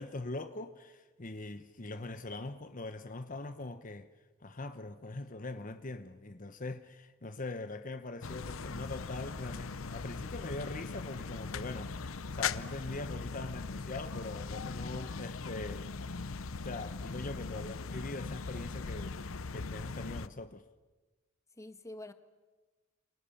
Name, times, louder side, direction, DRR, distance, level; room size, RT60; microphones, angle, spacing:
voice 1, 0.0-4.1 4.4-15.9 16.5-20.6, left 2 dB, 40° left, 1.0 m, -42 dB
sound 1, 8.2-20.3, left 4 dB, 80° left, 0.8 m, -40 dB
voice 2, 21.5-22.1, left 1 dB, 15° left, 1.4 m, -47 dB
29.0 x 27.5 x 7.2 m
head